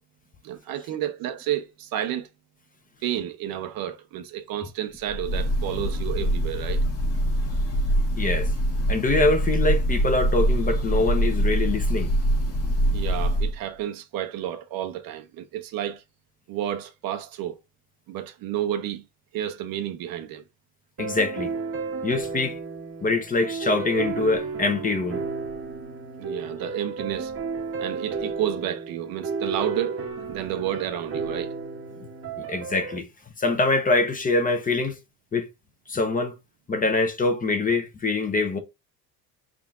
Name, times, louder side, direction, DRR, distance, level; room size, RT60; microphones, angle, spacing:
voice 1, 0.4-2.3 3.0-6.8 12.9-16.0 16.5-17.6 18.1-19.0 19.3-20.4 26.2-27.3 27.8-30.0 30.3-31.6, right 11 dB, 65° right, 0.8 m, -31 dB
Breathing / Bird, 5.1-13.6, equal, 40° left, 1.4 m, -24 dB
voice 2, 8.2-8.5 8.9-12.1 21.0-21.5 22.0-22.6 23.0-25.2 32.5-33.1 33.4-35.0 35.3-35.5 35.9-36.3 36.7-38.6, left 3 dB, 20° left, 0.9 m, -24 dB
sound 1, 21.0-33.0, right 4 dB, 35° right, 0.9 m, -33 dB
5.8 x 3.7 x 2.4 m
cardioid pair, 115°, 38 cm